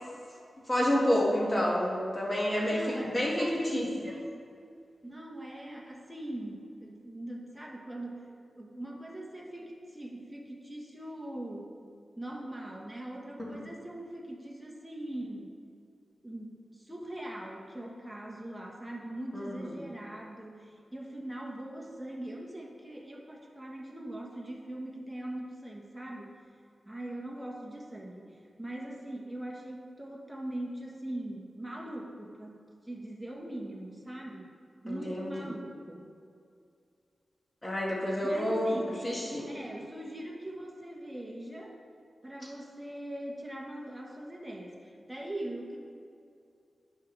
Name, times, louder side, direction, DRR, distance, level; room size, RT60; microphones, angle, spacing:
voice 1, 0.7-3.9 13.5-13.6 19.3-19.9 34.9-35.5 37.6-39.5, equal, 25° left, -4 dB, 1.8 m, -29 dB
voice 2, 2.6-4.4 5.0-11.8 12.2-15.5 16.2-26.4 26.8-34.6 34.8-36.1 38.2-39.0 39.5-41.7 42.2-45.8, right 1 dB, 10° right, -1 dB, 1.3 m, -41 dB
9.6 x 5.5 x 3.3 m, 2.4 s
cardioid pair, 60°, 0 cm